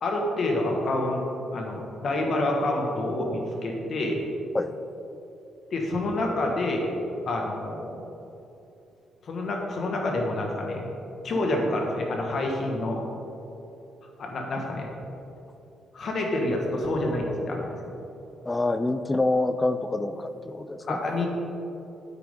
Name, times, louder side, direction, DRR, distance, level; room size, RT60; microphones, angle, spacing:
voice 1, 0.0-1.2 1.5-4.2 5.7-6.9 7.3-8.0 9.2-10.9 11.2-13.0 14.2-14.9 15.9-17.9 20.9-21.3, left 1 dB, 50° left, 0 dB, 1.7 m, -28 dB
voice 2, 18.4-21.0, left 2 dB, 15° left, 11 dB, 0.4 m, -26 dB
9.6 x 9.0 x 3.8 m, 2.9 s
cardioid pair, 130°, 0 cm